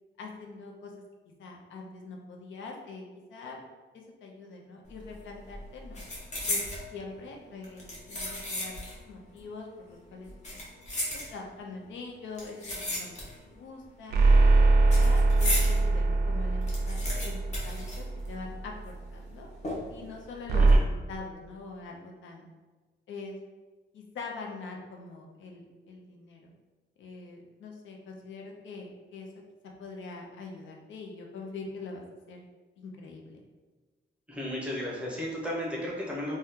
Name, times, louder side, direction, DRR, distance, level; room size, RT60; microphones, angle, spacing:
voice 1, 0.2-0.9 1.4-3.6 3.9-6.0 6.5-6.6 6.9-10.6 11.3-14.2 14.5-19.5 19.9-22.5 23.1-23.4 23.9-26.5 27.0-29.3 29.8-32.4 32.8-33.4, left 3 dB, 85° left, 1 dB, 0.5 m, -43 dB
sound 1, 4.9-5.2 5.5-6.9 7.6-9.0 9.3-9.4 10.2-11.7 12.3-13.6 13.8-15.8 16.2-16.3 16.5-18.6 18.9-19.0 19.6-20.1 20.5-20.7, left 1 dB, 40° left, 0.8 m, -35 dB
sound 2, 14.1-18.7 20.5-20.8, right 3 dB, 60° right, 0.4 m, -22 dB
voice 2, 34.3-36.4, left 1 dB, 5° right, -4 dB, 0.6 m, -34 dB
2.7 x 2.2 x 3.5 m, 1.3 s
wide cardioid pair, 160°, 19 cm